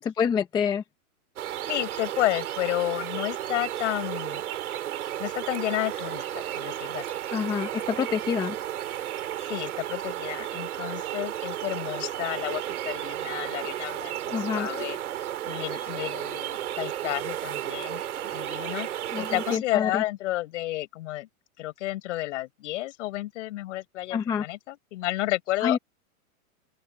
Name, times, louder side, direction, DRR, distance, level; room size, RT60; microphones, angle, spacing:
voice 1, 0.0-0.8 7.3-8.6 14.3-14.7 19.1-20.0 24.1-24.4 25.6-25.8, left 7 dB, 10° left, 0.7 m, -27 dB
sound 1, 1.4-19.6, right 12 dB, 75° right, 4.0 m, -33 dB
voice 2, 1.7-4.4 5.2-7.0 9.5-15.0 15.5-18.0 18.3-18.9 19.2-21.3 21.6-25.8, left 16 dB, 55° left, 6.9 m, -31 dB
open air
supercardioid pair, 160°, 44 cm